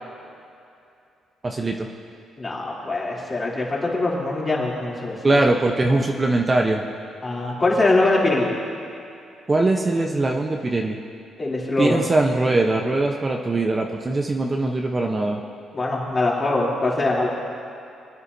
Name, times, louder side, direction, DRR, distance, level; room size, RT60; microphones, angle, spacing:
voice 1, 1.4-1.9 5.2-6.8 9.5-11.0 11.8-15.4, right 2 dB, 25° right, 1 dB, 0.9 m, -21 dB
voice 2, 2.4-5.4 5.9-6.0 7.2-8.5 11.4-12.0 15.7-17.3, left 2 dB, 30° left, -5 dB, 3.0 m, -23 dB
23.5 x 9.7 x 2.7 m, 2.6 s
cardioid pair, 90°, 0 cm